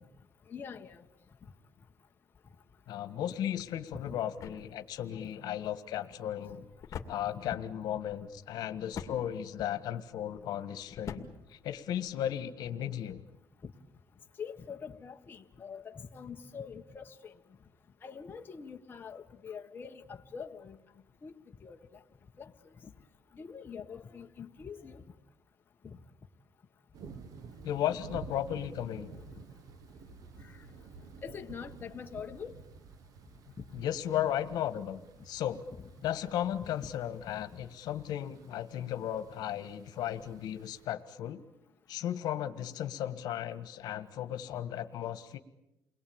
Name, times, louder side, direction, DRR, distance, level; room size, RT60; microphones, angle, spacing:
voice 1, 0.5-1.0 4.0-4.1 5.1-5.3 13.6-13.7 14.4-17.3 18.0-20.8 21.2-21.3 21.6-21.8 22.4-22.5 22.8-22.9 23.3-25.0 25.8-26.0 27.9-28.0 30.4-30.5 31.2-32.5 35.8-35.9 36.7-36.9 37.3-37.4, left 6 dB, 30° left, 3 dB, 1.5 m, -44 dB
voice 2, 2.9-6.6 7.1-11.2 11.5-13.2 27.6-29.1 33.7-35.0 35.2-35.6 36.0-41.4 41.9-45.4, left 11 dB, 80° left, 10 dB, 1.5 m, -35 dB
sound 1, 3.5-12.4, left 7 dB, 50° left, 2.3 m, -48 dB
sound 2, 26.9-40.9, right 5 dB, 60° right, 1.3 m, -52 dB
29.5 x 21.5 x 8.8 m, 0.92 s
cardioid pair, 140°, 7 cm